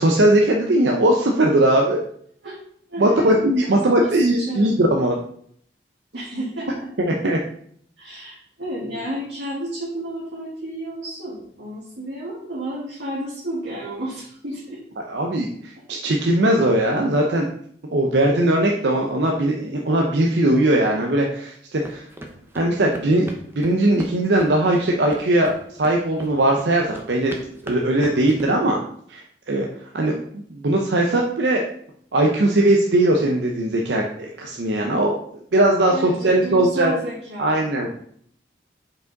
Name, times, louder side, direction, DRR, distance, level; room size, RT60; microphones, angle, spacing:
voice 1, 0.0-2.0 3.0-5.2 7.0-7.4 15.1-17.5 17.9-22.0 22.5-25.5 25.8-27.4 27.6-28.8 29.1-29.7 29.9-30.2 30.5-31.6 32.1-36.9 37.4-37.9, right 1 dB, 70° right, 0 dB, 0.6 m, -19 dB
voice 2, 2.9-4.8 6.1-6.9 8.0-14.8 35.9-37.9, right 1 dB, 90° right, -8 dB, 1.8 m, -32 dB
sound 1, 21.8-28.5, equal, 15° right, 0.7 m, -39 dB
5.2 x 4.7 x 3.9 m, 0.65 s
head